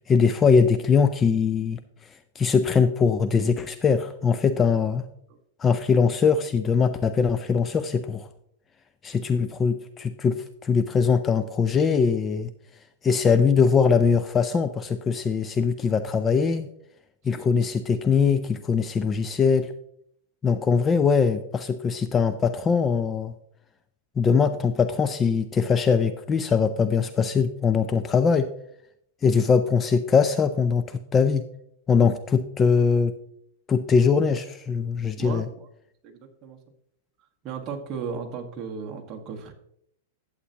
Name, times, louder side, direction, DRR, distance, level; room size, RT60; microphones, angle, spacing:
voice 1, 0.0-1.8 2.4-5.0 5.6-8.3 9.0-12.5 13.0-16.7 17.2-19.7 20.4-23.3 24.2-28.5 29.2-31.5 31.9-33.1 33.7-35.5, left 5 dB, 20° left, 11 dB, 0.4 m, -22 dB
voice 2, 17.3-17.7 20.6-20.7 35.2-35.7 36.0-36.6 37.4-39.5, right 6 dB, 30° right, 2 dB, 1.5 m, -36 dB
11.0 x 8.1 x 2.9 m, 0.72 s
supercardioid pair, 145°, 0 cm